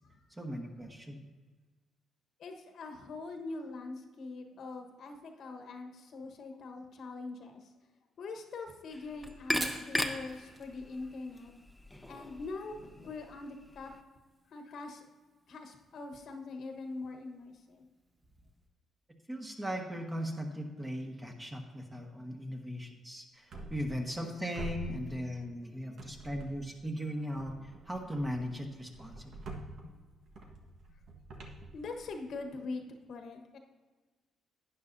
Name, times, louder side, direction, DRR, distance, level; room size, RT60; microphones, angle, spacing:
voice 1, 0.3-1.2 19.3-29.4, equal, 15° right, 2 dB, 1.5 m, -38 dB
voice 2, 2.4-7.7 8.2-11.5 12.1-13.9 14.5-15.0 15.5-17.9 29.8-30.0 31.7-33.6, left 3 dB, 65° left, 4 dB, 1.3 m, -43 dB
sound 1, 8.9-14.0, left 1 dB, 5° left, 0.9 m, -39 dB
Fire, 9.5-18.7, right 2 dB, 35° right, 1.6 m, -52 dB
sound 2, 23.5-24.3 24.5-25.6 26.0-26.8 27.4-32.4, right 2 dB, 65° right, 1.4 m, -46 dB
11.5 x 9.6 x 2.7 m, 1.4 s
cardioid pair, 90°, 0 cm